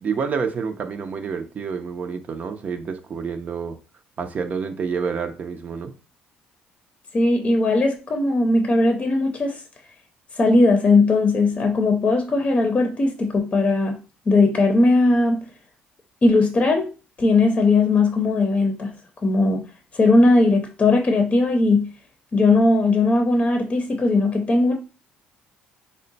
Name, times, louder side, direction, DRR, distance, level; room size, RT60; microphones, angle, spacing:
voice 1, 0.0-3.8 4.2-5.9, right 6 dB, 45° right, 0.6 m, -28 dB
voice 2, 7.1-9.6 10.4-14.0 14.3-15.4 16.2-16.9 17.2-18.9 19.2-19.6 19.9-21.9 22.3-24.7, left 2 dB, 35° left, 0.7 m, -18 dB
3.6 x 2.2 x 3.9 m
cardioid pair, 85°, 4 cm